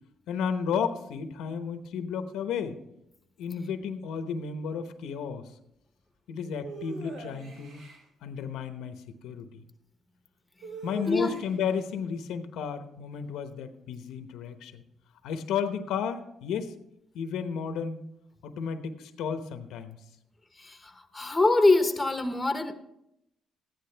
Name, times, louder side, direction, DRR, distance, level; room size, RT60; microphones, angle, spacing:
voice 1, 0.3-2.8 3.4-5.4 6.3-7.8 8.2-9.5 10.8-14.8 15.2-16.7 17.1-18.0 18.4-20.0, left 7 dB, 85° left, 0.9 m, -33 dB
sound 1, 6.6-8.0 10.6-11.8, right 3 dB, 70° right, 2.5 m, -41 dB
voice 2, 20.6-22.7, left 2 dB, 15° left, 1.2 m, -24 dB
14.0 x 10.5 x 3.4 m
cardioid pair, 90°, 0 cm